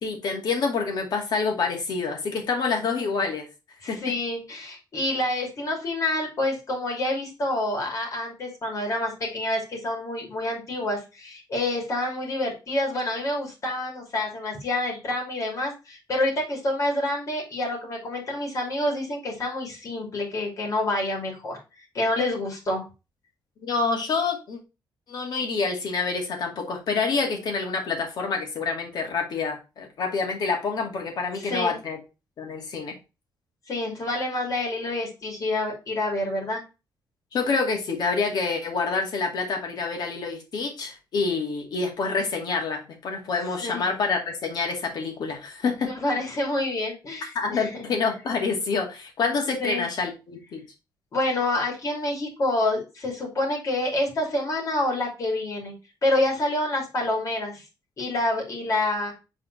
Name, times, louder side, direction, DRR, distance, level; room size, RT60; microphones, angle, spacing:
voice 1, 0.0-3.4 3.9-4.1 23.6-24.6 25.1-32.0 32.4-33.0 37.3-45.9 47.3-50.6, left 4 dB, 60° left, 3 dB, 2.3 m, -27 dB
voice 2, 3.8-21.6 21.9-22.8 31.3-31.7 33.7-36.6 43.6-43.9 45.9-47.9 49.6-49.9 51.1-55.7 56.0-57.6 58.0-59.1, left 1 dB, 45° left, 0 dB, 2.7 m, -27 dB
6.5 x 4.3 x 3.9 m, 0.28 s
wide cardioid pair, 160°, 8 cm